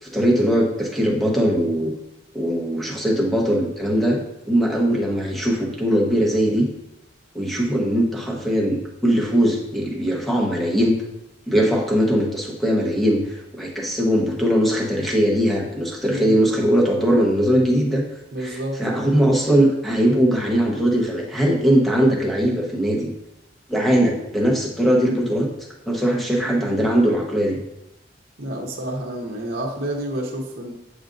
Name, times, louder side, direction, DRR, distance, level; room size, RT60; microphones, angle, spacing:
voice 1, 0.0-1.9 2.3-4.2 4.5-6.7 7.3-11.0 11.5-18.0 18.4-23.1 23.7-25.5 25.9-27.6, equal, ahead, -2 dB, 1.1 m, -20 dB
voice 2, 18.3-19.1 26.4-26.8 28.4-30.7, right 1 dB, 55° right, -1 dB, 1.0 m, -29 dB
7.9 x 5.0 x 2.6 m, 0.93 s
head